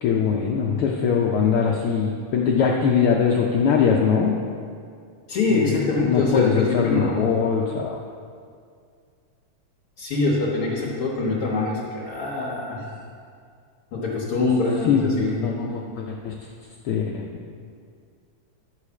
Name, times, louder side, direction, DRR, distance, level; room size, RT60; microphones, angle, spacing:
voice 1, 0.0-4.4 5.5-8.0 14.8-15.1 15.4-16.3 16.8-17.2, left 6 dB, 85° left, -1 dB, 1.2 m, -22 dB
voice 2, 5.3-7.3 10.0-12.9 13.9-15.4, left 3 dB, 55° left, -4 dB, 1.9 m, -24 dB
11.5 x 4.9 x 7.0 m, 2.2 s
omnidirectional pair, 3.3 m